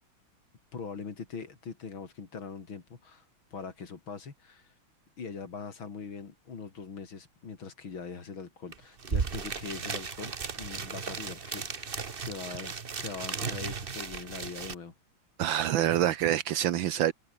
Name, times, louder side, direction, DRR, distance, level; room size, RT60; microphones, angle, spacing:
voice 1, 0.7-3.3 3.5-4.7 5.2-12.0 12.2-14.9, left 5 dB, 75° left, 3.9 m, -42 dB
sound 1, 8.7-8.8 9.0-14.7, right 5 dB, 30° right, 1.3 m, -35 dB
voice 2, 15.4-17.1, right 12 dB, 75° right, 1.5 m, -26 dB
omnidirectional pair, 2.2 m